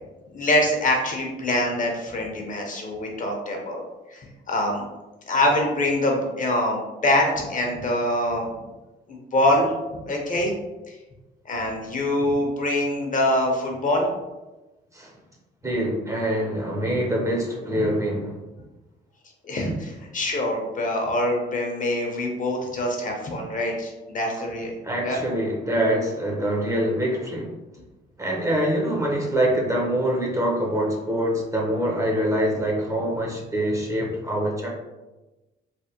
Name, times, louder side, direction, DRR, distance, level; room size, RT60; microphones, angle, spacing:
voice 1, 0.3-3.8 4.1-4.8 5.3-8.5 9.1-9.7 10.0-10.5 10.9-11.0 11.4-14.1 19.4-24.7 25.0-25.2, left 1 dB, 40° left, 1 dB, 0.7 m, -24 dB
voice 2, 15.6-18.4 19.6-19.7 24.8-27.5 28.2-34.7, right 1 dB, 15° right, -2 dB, 0.6 m, -25 dB
3.3 x 2.1 x 2.8 m, 1.1 s
cardioid pair, 90°, 20 cm